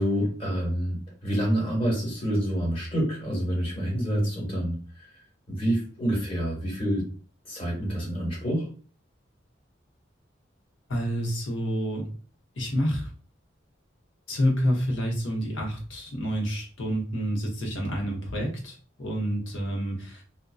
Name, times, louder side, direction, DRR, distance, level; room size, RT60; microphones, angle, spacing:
voice 1, 0.0-5.0 5.5-7.1 7.4-8.7, equal, 30° left, -4 dB, 1.2 m, -27 dB
voice 2, 10.9-12.1 12.6-13.1 14.3-20.2, equal, 80° left, -1 dB, 0.9 m, -28 dB
2.5 x 2.1 x 2.3 m, 0.39 s
head